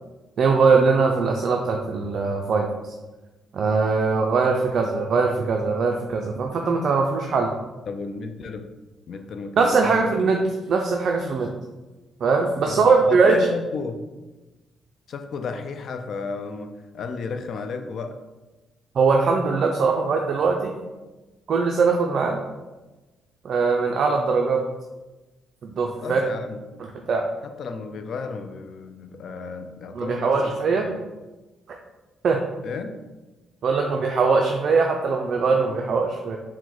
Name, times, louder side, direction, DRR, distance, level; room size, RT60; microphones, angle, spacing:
voice 1, 0.4-2.7 3.5-7.5 9.6-10.4 10.7-11.5 12.2-13.4 19.0-20.7 21.5-22.4 23.4-24.6 25.6-26.2 26.8-27.2 29.9-30.9 32.2-32.4 33.6-36.4, right 4 dB, 60° right, 2 dB, 0.3 m, -21 dB
voice 2, 7.9-8.7 9.1-10.3 12.6-14.0 15.1-18.2 26.0-26.6 27.4-31.0 32.6-32.9, left 4 dB, 60° left, 8 dB, 0.3 m, -33 dB
4.6 x 2.1 x 3.8 m, 1.2 s
cardioid pair, 90°, 0 cm